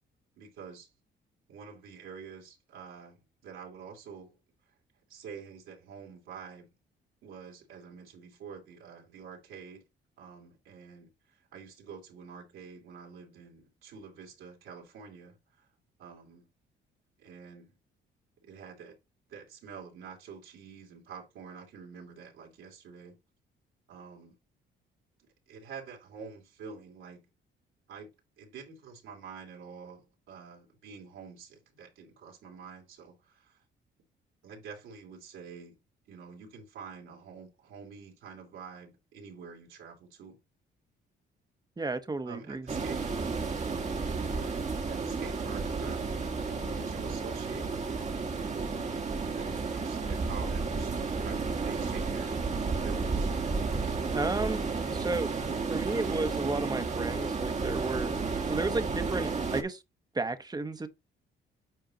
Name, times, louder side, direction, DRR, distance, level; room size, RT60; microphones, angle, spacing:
voice 1, 0.3-0.9 1.5-4.3 5.1-6.7 7.2-9.8 10.2-15.7 16.0-16.5 17.2-17.8 18.4-19.0 19.3-23.2 23.9-24.3 25.5-27.2 27.9-28.1 28.4-33.6 34.4-35.7 36.1-40.4 42.2-43.0 44.8-48.2 49.3-52.4 52.7-53.3, right 6 dB, 80° right, 2.8 m, -47 dB
voice 2, 41.8-42.7 54.1-54.6 54.9-55.3 55.7-58.1 58.5-59.8 60.1-60.9, right 3 dB, 20° right, 1.0 m, -32 dB
sound 1, 42.7-59.6, right 4 dB, 35° right, 1.4 m, -32 dB
9.1 x 4.5 x 2.9 m
cardioid pair, 90°, 20 cm